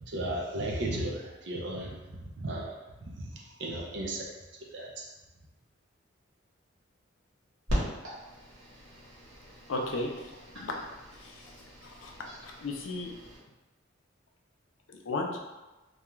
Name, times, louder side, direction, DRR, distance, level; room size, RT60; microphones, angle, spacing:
voice 1, 0.0-2.7 3.0-4.3 4.7-5.0, right 1 dB, 60° right, -1 dB, 0.5 m, -35 dB
sound 1, 7.7-13.4, equal, 90° right, 1.0 m, -39 dB
voice 2, 9.7-10.3 10.6-10.8 11.2-11.3 11.8-12.1 12.4-13.1 15.1-15.4, left 2 dB, 75° left, 1 dB, 0.4 m, -34 dB
2.3 x 2.3 x 3.0 m, 1.1 s
head